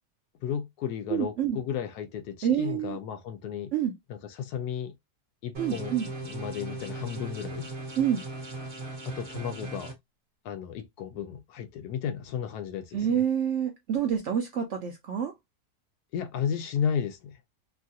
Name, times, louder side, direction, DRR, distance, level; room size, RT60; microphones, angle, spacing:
voice 1, 0.4-3.7 4.1-4.9 5.4-7.7 9.1-9.9 10.4-13.2 16.1-17.4, left 8 dB, 75° left, 1.1 m, -34 dB
voice 2, 1.1-1.6 2.4-3.0 3.7-3.9 5.6-6.1 8.0-8.2 12.9-15.3, right 9 dB, 70° right, 0.7 m, -27 dB
sound 1, 5.5-9.9, right 2 dB, 35° right, 0.8 m, -38 dB
3.0 x 2.4 x 2.6 m
omnidirectional pair, 1.7 m